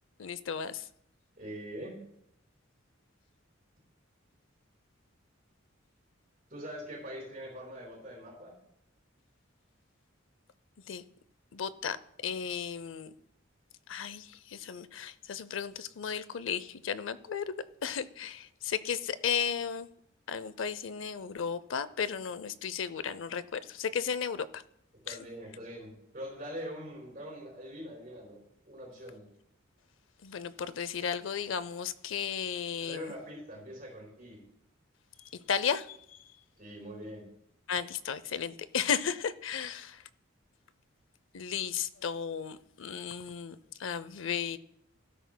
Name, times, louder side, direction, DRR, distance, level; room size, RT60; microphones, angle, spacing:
voice 1, 0.2-0.9 10.9-11.0 11.5-12.0 12.2-13.1 13.9-19.9 20.3-24.6 25.1-25.2 30.2-33.1 35.2-36.3 37.7-40.0 41.3-44.6, left 7 dB, 70° left, 0.5 m, -34 dB
voice 2, 1.4-2.0 6.5-8.5 25.0-29.2 32.8-34.4 36.6-37.3, equal, 40° right, 4.0 m, -43 dB
14.5 x 12.5 x 2.2 m
head